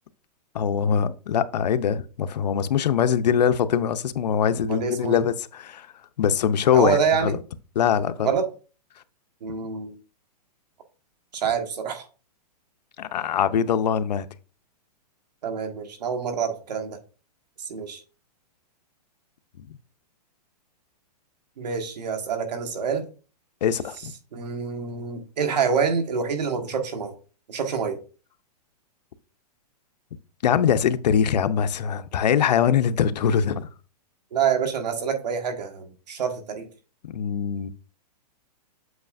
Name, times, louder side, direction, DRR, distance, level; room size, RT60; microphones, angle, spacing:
voice 1, 0.5-5.9 6.2-7.0 7.2-7.4 7.8-8.3 13.0-14.3 23.6-24.1 30.4-33.7 37.1-37.7, left 8 dB, 90° left, 0.6 m, -22 dB
voice 2, 4.6-5.2 6.7-7.3 8.2-8.5 9.4-10.0 11.3-12.1 15.4-17.0 17.6-18.0 21.6-23.1 24.3-27.2 27.5-28.0 34.3-36.7, right 6 dB, 90° right, 1.6 m, -26 dB
8.1 x 4.8 x 2.5 m
hypercardioid pair, 170°, 21 cm